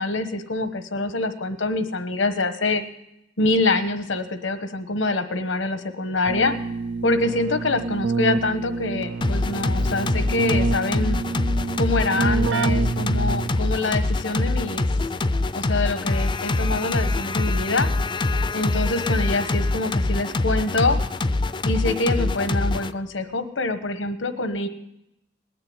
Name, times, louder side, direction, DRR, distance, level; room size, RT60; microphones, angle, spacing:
voice 1, 0.0-2.8 3.4-6.6 7.0-11.2 11.8-14.9 15.5-17.9 18.5-21.0 21.6-24.7, left 2 dB, 90° left, 9 dB, 1.2 m, -25 dB
Keyboard (musical), 6.2-13.8, right 4 dB, 70° right, 0.5 m, -27 dB
sound 1, 9.2-22.9, left 2 dB, 25° left, 0.5 m, -24 dB
19.5 x 6.8 x 9.6 m, 0.86 s
head